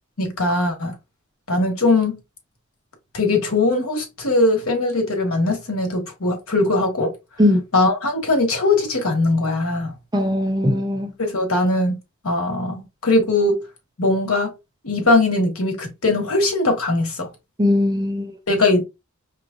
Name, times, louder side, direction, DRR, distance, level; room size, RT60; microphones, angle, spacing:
voice 1, 0.2-1.0 1.5-2.2 3.1-7.1 7.7-9.9 11.2-11.9 12.2-13.6 14.0-14.5 14.8-17.3 18.5-18.8, left 2 dB, 80° left, 1.4 m, -20 dB
voice 2, 10.1-11.1 17.6-18.4, left 1 dB, 20° right, 0.6 m, -19 dB
5.0 x 3.2 x 2.4 m
head